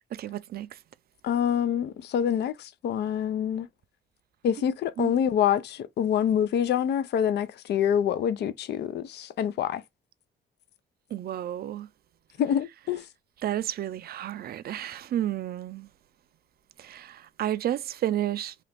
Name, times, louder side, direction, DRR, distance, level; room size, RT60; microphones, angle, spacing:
voice 1, 0.2-0.7 5.0-5.1 11.1-11.9 13.4-15.9 16.8-18.5, right 12 dB, 50° right, 0.4 m, -31 dB
voice 2, 1.2-3.7 4.4-9.8 12.4-13.0, left 9 dB, 60° left, 0.4 m, -26 dB
2.9 x 2.5 x 3.3 m
cardioid pair, 90°, 20 cm